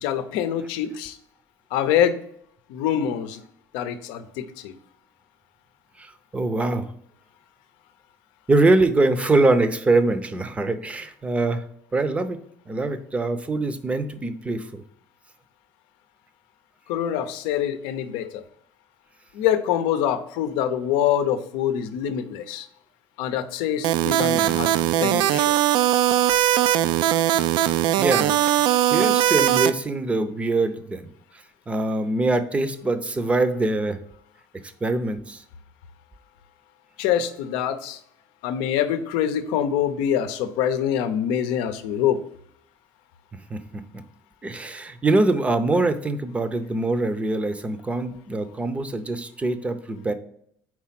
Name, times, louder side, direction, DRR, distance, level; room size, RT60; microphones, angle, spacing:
voice 1, 0.0-1.2 1.7-2.2 2.7-3.4 3.7-4.8 16.9-18.4 19.3-22.7 23.2-25.6 37.0-38.0 38.4-42.2, left 9 dB, 90° left, 10 dB, 0.6 m, -25 dB
voice 2, 6.0-6.9 8.5-11.6 11.9-12.4 12.7-14.8 24.3-24.6 28.0-28.3 28.6-34.0 34.6-35.4 43.3-44.0 44.4-50.1, right 2 dB, 15° right, 11 dB, 0.6 m, -24 dB
sound 1, 23.8-29.7, right 12 dB, 70° right, 0.3 m, -20 dB
4.7 x 4.1 x 5.8 m, 0.69 s
cardioid pair, 130°, 8 cm